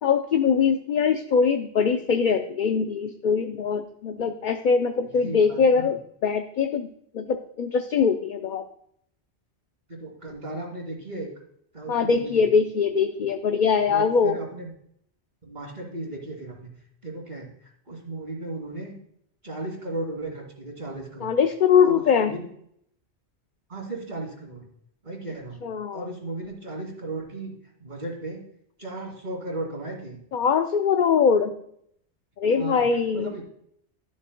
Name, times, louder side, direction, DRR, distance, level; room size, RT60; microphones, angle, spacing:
voice 1, 0.0-8.6 11.9-14.4 21.2-22.3 25.6-26.1 30.3-31.5 32.4-33.3, left 6 dB, 55° left, 6 dB, 0.6 m, -22 dB
voice 2, 5.1-5.9 9.9-11.3 11.7-12.5 13.9-14.7 15.4-18.9 19.4-21.3 21.8-22.5 23.7-24.7 25.0-25.6 25.9-28.5 28.8-30.2 32.5-33.4, right 2 dB, 45° right, 0 dB, 2.5 m, -36 dB
12.5 x 7.5 x 2.2 m, 0.68 s
omnidirectional pair, 1.1 m